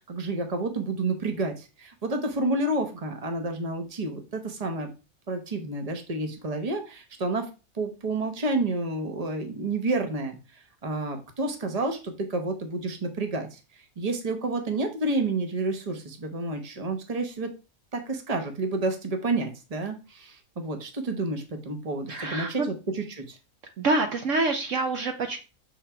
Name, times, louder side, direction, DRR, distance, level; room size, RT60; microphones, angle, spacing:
voice 1, 0.1-4.9 5.3-7.5 7.7-10.4 10.8-13.6 14.0-17.5 17.9-23.4, right 2 dB, 30° right, 5 dB, 1.1 m, -30 dB
voice 2, 22.1-22.7 23.8-25.4, right 3 dB, 65° right, 6 dB, 1.0 m, -26 dB
6.9 x 3.6 x 4.4 m, 0.30 s
omnidirectional pair, 1.5 m